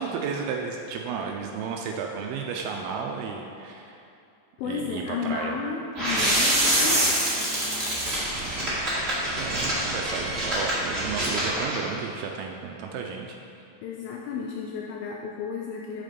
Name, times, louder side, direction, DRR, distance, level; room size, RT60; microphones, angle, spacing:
voice 1, 0.0-4.0 4.6-5.6 8.4-8.6 9.4-13.7, right 5 dB, 80° right, 2 dB, 2.3 m, -33 dB
voice 2, 4.6-7.5 13.8-16.0, left 5 dB, 80° left, 0 dB, 2.1 m, -33 dB
sound 1, 5.9-11.8, right 1 dB, 25° right, 1.3 m, -25 dB
9.2 x 6.6 x 5.2 m, 2.7 s
omnidirectional pair, 4.8 m